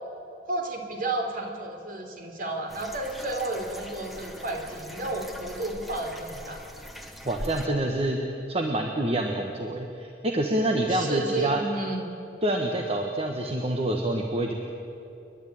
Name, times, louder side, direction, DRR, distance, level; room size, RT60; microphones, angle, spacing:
voice 1, 0.4-6.6 10.9-12.1, right 2 dB, 50° right, 3 dB, 3.3 m, -32 dB
sound 1, 2.7-7.7, equal, ahead, 1.4 m, -42 dB
voice 2, 7.2-8.2 8.5-11.6 12.4-14.5, right 1 dB, 35° right, 2 dB, 1.4 m, -27 dB
29.5 x 11.0 x 9.3 m, 2.7 s
head